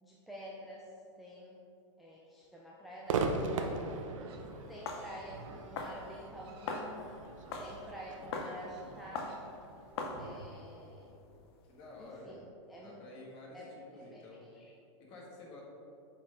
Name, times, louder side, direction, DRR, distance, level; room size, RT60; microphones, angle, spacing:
voice 1, 0.0-1.6 2.0-3.8 4.7-7.2 7.6-9.6 10.2-11.1 12.0-13.0 13.5-14.2 14.5-14.7, right 1 dB, ahead, -5 dB, 0.3 m, -49 dB
Livestock farm animals working animals, 3.1-10.4, right 3 dB, 50° right, 1.0 m, -55 dB
Crowd / Fireworks, 3.1-10.4, right 4 dB, 80° right, 0.7 m, -39 dB
sound 1, 4.5-12.1, left 3 dB, 50° left, 0.7 m, -43 dB
voice 2, 11.6-12.4 12.8-14.4 15.0-15.6, left 2 dB, 30° left, -3 dB, 1.4 m, -50 dB
7.2 x 4.5 x 3.7 m, 2.7 s
supercardioid pair, 160°, 16 cm